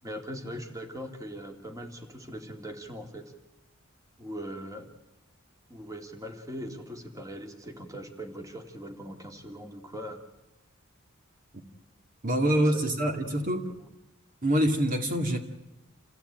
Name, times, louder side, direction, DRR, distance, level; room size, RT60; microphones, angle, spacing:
voice 1, 0.0-3.3 4.2-4.9 5.7-10.2 12.5-12.8 13.1-13.9, equal, 15° right, 4 dB, 2.5 m, -41 dB
voice 2, 12.2-13.6 14.4-15.4, right 1 dB, 40° right, 4 dB, 2.2 m, -25 dB
28.5 x 16.5 x 9.0 m, 0.97 s
head